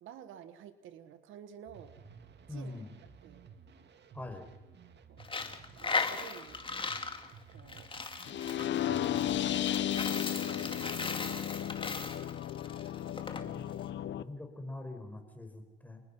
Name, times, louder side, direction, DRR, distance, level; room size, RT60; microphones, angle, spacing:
voice 1, 0.0-1.9 2.5-2.8 3.2-3.4 5.1-5.2 5.8-6.6 7.5-7.9 8.5-9.4 9.8-11.8, right 9 dB, 85° right, 11 dB, 1.6 m, -51 dB
sound 1, 1.7-10.2, right 6 dB, 60° right, 2.1 m, -55 dB
voice 2, 2.5-2.9 4.1-4.5 13.3-13.6 14.2-16.0, left 2 dB, 10° left, 5 dB, 5.1 m, -43 dB
Coin (dropping), 5.2-13.4, left 4 dB, 25° left, 2.3 m, -37 dB
sound 2, 8.2-14.2, left 11 dB, 70° left, 0.9 m, -34 dB
28.0 x 20.0 x 5.6 m, 0.99 s
cardioid pair, 90°, 20 cm